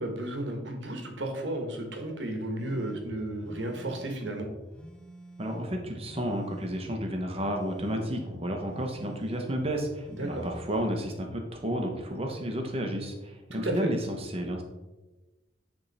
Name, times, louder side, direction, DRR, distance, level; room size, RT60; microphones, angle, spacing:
voice 1, 0.0-4.5 10.1-10.5 13.5-13.8, right 1 dB, 70° right, 3 dB, 1.4 m, -33 dB
sound 1, 2.6-11.1, right 1 dB, 5° left, 0.5 m, -48 dB
voice 2, 5.4-14.6, equal, 30° right, 3 dB, 1.0 m, -32 dB
10.0 x 3.6 x 4.2 m, 1.1 s
head